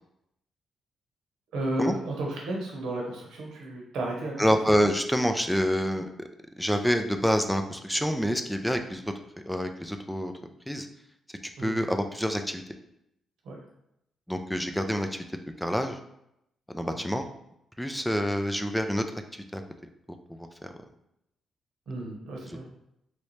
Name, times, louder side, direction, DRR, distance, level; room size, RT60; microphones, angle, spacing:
voice 1, 1.5-4.5 11.6-11.8 13.4-13.6 16.9-17.0 21.9-22.7, right 1 dB, 80° right, -1 dB, 0.9 m, -33 dB
voice 2, 4.4-6.3 6.6-9.0 9.5-10.3 10.7-10.9 11.6-12.6 14.3-15.2 15.6-16.0 16.7-17.3 17.8-19.0 19.5-19.6 20.3-20.7, equal, 5° left, 6 dB, 0.4 m, -27 dB
3.2 x 2.7 x 3.1 m, 0.80 s
cardioid pair, 70°, 0 cm